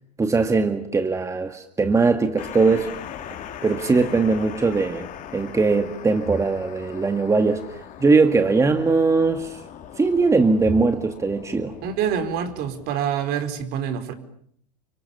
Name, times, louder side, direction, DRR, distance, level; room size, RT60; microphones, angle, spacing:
voice 1, 0.2-2.9 3.6-5.1 5.3-9.6 10.0-11.7, right 4 dB, 15° right, 7 dB, 2.0 m, -20 dB
sound 1, 2.4-12.9, left 9 dB, 40° left, 4.2 m, -40 dB
voice 2, 11.8-14.1, right 8 dB, 50° right, 9 dB, 4.8 m, -26 dB
30.0 x 25.0 x 7.1 m, 0.65 s
hypercardioid pair, 100°, 21 cm